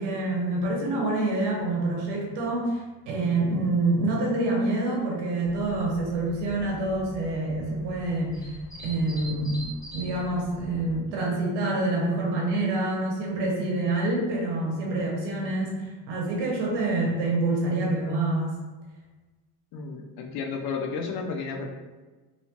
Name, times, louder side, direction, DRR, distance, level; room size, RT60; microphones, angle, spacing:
voice 1, 0.0-8.5 8.8-18.6, right 2 dB, 80° right, -1 dB, 0.7 m, -27 dB
sound 1, 5.4-11.0, right 1 dB, 10° left, 0.7 m, -44 dB
voice 2, 19.7-21.7, left 5 dB, 70° left, 3 dB, 0.5 m, -32 dB
2.7 x 2.1 x 2.8 m, 1.2 s
cardioid pair, 155°, 39 cm